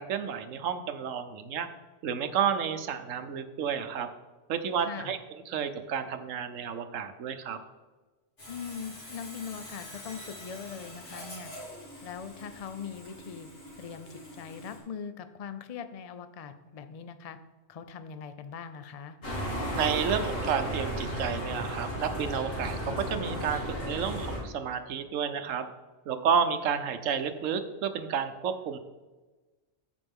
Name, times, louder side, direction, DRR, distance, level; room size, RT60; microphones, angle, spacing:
voice 1, 0.0-1.7 2.0-4.1 4.5-5.2 5.5-7.6 19.7-25.7 26.1-28.8, right 7 dB, 85° right, 9 dB, 1.1 m, -31 dB
voice 2, 4.8-5.1 8.5-11.5 12.0-13.5 13.8-17.4 17.7-19.2, left 6 dB, 45° left, 10 dB, 0.5 m, -41 dB
Sawing, 8.4-14.8, left 1 dB, 70° left, 3.4 m, -46 dB
sound 1, 19.2-24.4, equal, 85° left, 2.6 m, -33 dB
15.0 x 5.1 x 3.6 m, 1.2 s
omnidirectional pair, 1.3 m